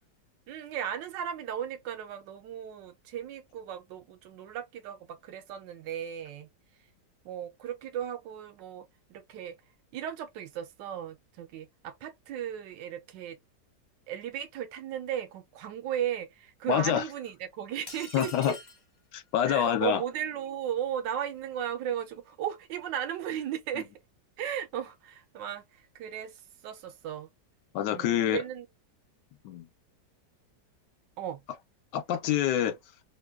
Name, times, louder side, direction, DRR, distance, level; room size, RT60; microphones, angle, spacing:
voice 1, 0.5-6.5 7.2-9.6 9.9-13.4 14.1-18.6 19.5-23.9 24.4-27.3 27.9-28.7 31.2-31.4, right 10 dB, 85° right, 1.3 m, -36 dB
voice 2, 16.7-17.0 18.1-18.5 19.1-20.0 27.7-28.4 29.4-29.6 31.9-32.7, left 10 dB, 75° left, 1.2 m, -26 dB
sound 1, 17.9-18.9, left 2 dB, 35° left, 0.5 m, -44 dB
3.3 x 2.2 x 2.2 m
omnidirectional pair, 1.9 m